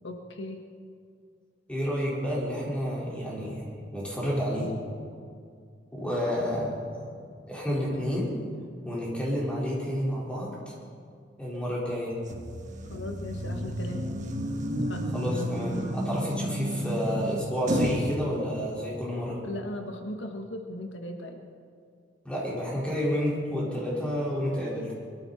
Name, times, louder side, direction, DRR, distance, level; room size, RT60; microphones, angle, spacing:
voice 1, 0.0-0.6 12.9-14.1 14.8-15.0 19.4-21.4, left 1 dB, 85° left, 4 dB, 1.4 m, -37 dB
voice 2, 1.7-4.7 5.9-7.1 7.5-8.3 8.8-10.8 11.4-12.2 15.1-19.4 22.2-24.9, equal, 5° left, -6 dB, 4.7 m, -30 dB
sound 1, 12.3-18.1, equal, 45° right, 1.4 m, -31 dB
22.5 x 13.5 x 4.3 m, 2.2 s
head